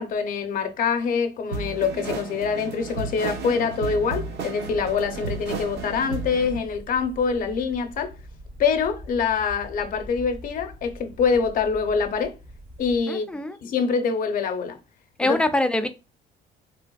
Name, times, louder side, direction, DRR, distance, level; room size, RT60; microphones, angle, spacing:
voice 1, 0.0-8.1 8.6-12.4 12.8-14.8 15.2-15.4, left 5 dB, 55° left, 0.6 m, -25 dB
sound 1, 1.5-6.6, right 4 dB, 75° right, 0.9 m, -33 dB
sound 2, 4.6-13.0, right 1 dB, 55° right, 1.4 m, -43 dB
voice 2, 13.1-13.6 15.2-15.9, left 1 dB, 5° left, 0.4 m, -23 dB
3.3 x 3.3 x 2.3 m
cardioid pair, 110°, 17 cm